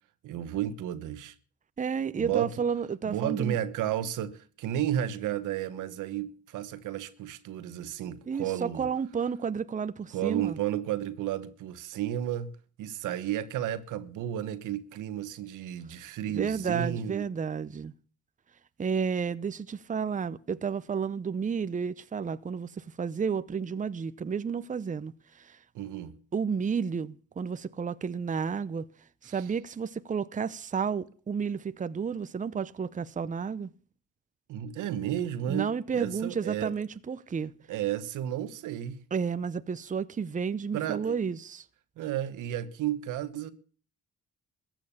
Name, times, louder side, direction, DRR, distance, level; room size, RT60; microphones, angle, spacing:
voice 1, 0.2-1.3 2.2-2.5 3.0-8.9 10.1-12.5 12.8-17.3 25.7-26.2 29.2-29.3 34.5-36.7 37.7-39.0 40.7-41.2 42.0-43.5, right 11 dB, 85° right, 1.3 m, -32 dB
voice 2, 1.8-3.6 8.3-10.6 16.3-17.9 18.8-25.6 26.3-28.9 29.2-33.7 35.5-37.5 39.1-41.6, right 6 dB, 25° right, 0.7 m, -31 dB
15.0 x 9.1 x 7.2 m
cardioid pair, 90°, 30 cm